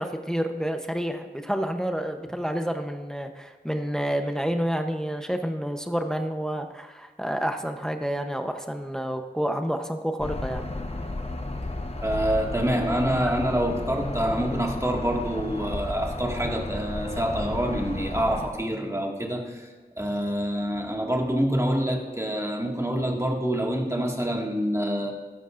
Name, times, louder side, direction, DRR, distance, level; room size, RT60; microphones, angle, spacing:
voice 1, 0.0-10.7 13.2-13.4, equal, 5° left, 6 dB, 0.8 m, -29 dB
sound 1, 10.2-18.5, left 2 dB, 40° left, 0.9 m, -33 dB
voice 2, 12.0-19.7 20.0-25.1, equal, 20° right, 0 dB, 1.9 m, -26 dB
15.0 x 13.0 x 2.5 m, 1.3 s
wide cardioid pair, 45°, 16 cm